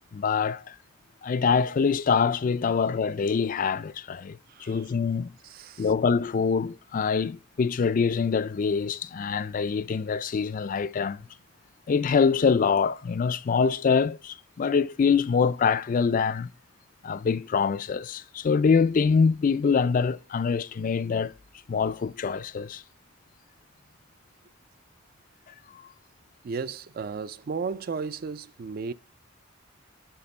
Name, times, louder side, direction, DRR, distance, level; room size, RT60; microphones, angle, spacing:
voice 1, 0.1-0.8 1.2-5.3 5.8-11.2 11.9-16.5 17.0-21.3 21.7-22.8, left 5 dB, 40° left, 0.3 m, -24 dB
voice 2, 4.5-4.9 5.4-5.9 26.4-28.9, right 5 dB, 45° right, 0.4 m, -34 dB
11.0 x 4.3 x 4.3 m
head